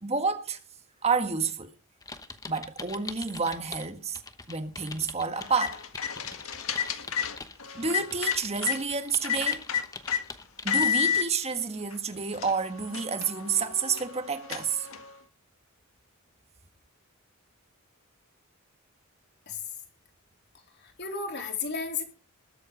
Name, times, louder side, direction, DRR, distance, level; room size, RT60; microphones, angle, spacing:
voice 1, 0.0-0.6 1.0-1.7 2.5-4.2 4.5-5.8 6.9-7.0 7.7-9.6 10.6-14.9, right 5 dB, 30° right, 1.6 m, -29 dB
sound 1, 2.0-3.9 4.1-10.9, left 4 dB, 15° left, 0.9 m, -43 dB
sound 2, 5.3-8.8 9.2-10.2 10.7-11.3 11.9-12.0 12.3-15.2, left 8 dB, 70° left, 1.7 m, -31 dB
voice 2, 20.8-22.0, left 5 dB, 50° left, 3.7 m, -33 dB
20.5 x 8.1 x 5.1 m
head